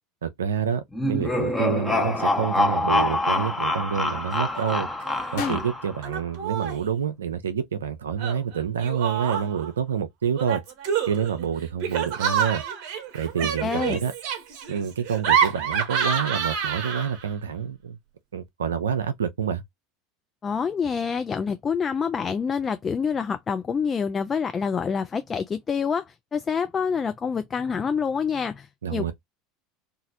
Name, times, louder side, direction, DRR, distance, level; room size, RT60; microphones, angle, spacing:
voice 1, 0.2-0.8 1.1-4.9 5.3-10.6 11.1-12.6 13.1-14.1 14.7-18.0 18.3-19.6 28.8-29.1, right 7 dB, 75° right, 0.3 m, -27 dB
sound 1, 0.9-6.0, left 2 dB, 10° left, 0.8 m, -25 dB
Laughter, 4.3-4.7 5.0-5.6 6.0-6.9 8.2-9.7 10.4-17.3, right 8 dB, 50° right, 0.9 m, -28 dB
sound 2, 5.3-7.5, left 6 dB, 60° left, 0.8 m, -41 dB
voice 2, 13.6-14.0 20.4-29.1, left 6 dB, 25° left, 0.3 m, -27 dB
2.9 x 2.4 x 2.7 m
figure-of-eight pair, 75°, 0 cm